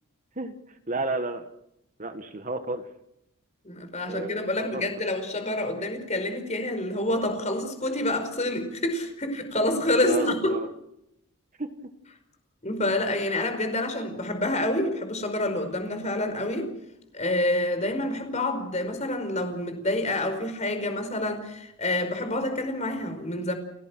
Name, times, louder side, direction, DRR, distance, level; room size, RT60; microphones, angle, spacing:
voice 1, 0.9-1.5 2.0-2.8 4.1-4.3 4.6-4.8 10.0-10.7 11.6-11.7, right 2 dB, 35° right, 1.6 m, -31 dB
voice 2, 3.6-10.6 12.6-16.7 17.1-23.5, left 1 dB, 30° left, 5.0 m, -27 dB
30.0 x 18.0 x 6.3 m
head